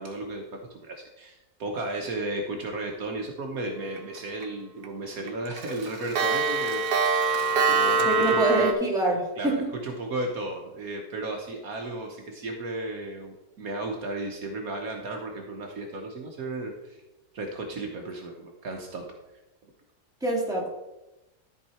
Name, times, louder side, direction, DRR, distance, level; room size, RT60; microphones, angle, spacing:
voice 1, 0.0-7.3 7.7-8.7 9.4-17.0 17.3-19.1, right 2 dB, 65° right, 2 dB, 1.4 m, -34 dB
Clock, 4.0-4.4 4.8-4.9 5.3-8.7, right 4 dB, 85° right, 1.5 m, -24 dB
voice 2, 8.0-9.6 20.2-20.7, right 2 dB, ahead, -4 dB, 2.6 m, -25 dB
13.5 x 4.6 x 4.3 m, 0.98 s
omnidirectional pair, 1.7 m